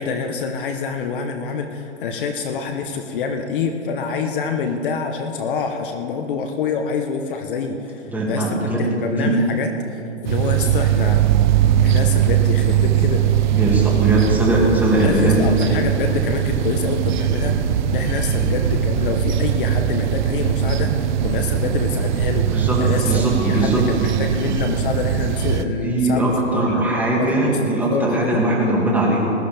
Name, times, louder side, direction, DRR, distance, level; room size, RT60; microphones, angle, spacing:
voice 1, 0.0-11.2 11.8-13.2 15.0-22.5 22.8-27.6 27.9-28.4, left 5 dB, 45° left, 5 dB, 1.1 m, -26 dB
voice 2, 8.1-8.8 9.1-9.3 13.5-15.7 18.3-18.5 22.5-23.8 25.8-29.3, right 1 dB, 5° right, -4 dB, 2.4 m, -20 dB
sound 1, 10.2-25.6, right 10 dB, 40° right, 0.7 m, -20 dB
20.0 x 13.5 x 3.5 m, 2.8 s
hypercardioid pair, 140°, 35 cm